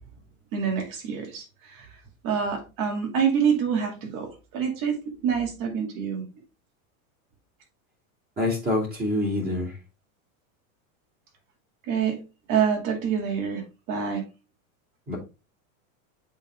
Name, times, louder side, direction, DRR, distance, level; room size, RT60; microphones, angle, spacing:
voice 1, 0.5-1.9 2.2-6.2 11.9-12.2 12.5-14.2, right 7 dB, 50° right, 2.4 m, -26 dB
voice 2, 8.4-9.7 15.1-15.2, left 1 dB, 20° right, 3.0 m, -26 dB
8.0 x 3.8 x 3.6 m
supercardioid pair, 125°, 42 cm